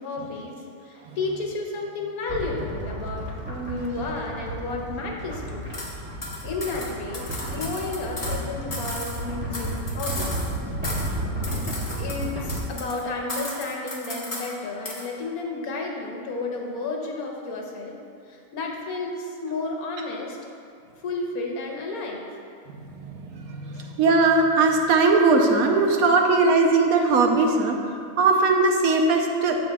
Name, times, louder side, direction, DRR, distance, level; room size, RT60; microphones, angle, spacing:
voice 1, 0.0-5.7 6.2-10.4 12.0-18.0 18.3-20.4 21.0-22.3 23.7-23.8, left 3 dB, 85° left, 0 dB, 1.4 m, -32 dB
sound 1, 2.3-12.6, right 1 dB, 5° right, 1.7 m, -32 dB
sound 2, 5.7-5.9 6.2-8.4 8.7-10.6 10.8-11.2 11.4-13.0 13.3-14.5 14.9-15.1, left 1 dB, 30° left, 1.0 m, -35 dB
voice 2, 24.0-27.8 28.2-29.6, right 3 dB, 85° right, 2 dB, 1.2 m, -19 dB
14.5 x 5.0 x 2.3 m, 2.4 s
omnidirectional pair, 1.5 m